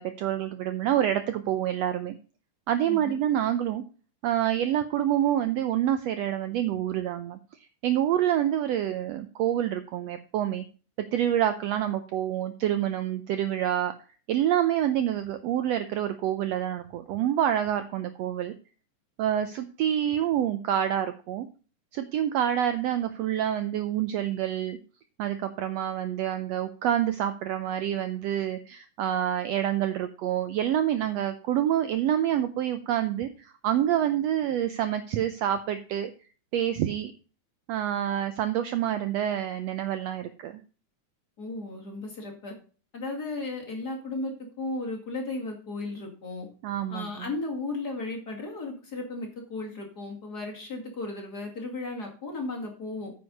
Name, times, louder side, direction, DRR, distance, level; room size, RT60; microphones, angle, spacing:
voice 1, 0.0-2.1 2.7-3.8 4.2-7.4 7.8-10.6 11.1-13.9 14.3-18.5 19.2-21.5 21.9-24.8 25.2-36.1 36.5-37.1 37.7-40.6 46.6-47.1, right 11 dB, 75° right, 10 dB, 1.6 m, -27 dB
voice 2, 2.9-3.2 41.4-42.5 42.9-46.5 46.9-53.1, left 2 dB, 35° left, 0 dB, 2.3 m, -35 dB
9.5 x 6.3 x 5.2 m, 0.37 s
omnidirectional pair, 3.5 m